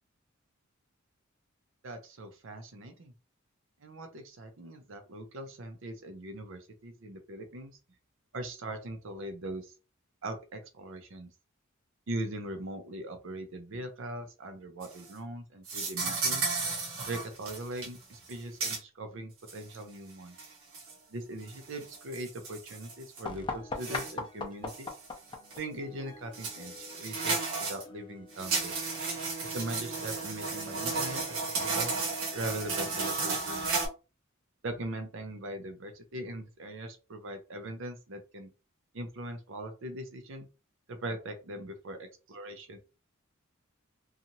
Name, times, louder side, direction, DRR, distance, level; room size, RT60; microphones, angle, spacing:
voice 1, 1.8-3.1 3.8-7.8 8.3-9.7 10.2-11.3 12.1-16.5 17.0-20.4 21.1-24.9 25.6-27.4 27.7-28.7 29.4-31.4 31.6-32.0 32.3-33.8 34.6-38.5 38.9-40.5 40.9-42.8, right 1 dB, 65° right, 6 dB, 0.6 m, -40 dB
sound 1, 14.8-15.1 15.7-17.9 18.2-18.3 18.6-18.8 19.5-19.6 20.4-20.9 21.5-23.2 23.8-24.1 24.7-25.1 25.5-25.6 26.3-27.8 28.3-33.9, right 4 dB, 85° right, 1.0 m, -33 dB
sound 2, 23.2-28.8, left 3 dB, 25° left, 0.5 m, -41 dB
2.8 x 2.4 x 2.7 m, 0.31 s
head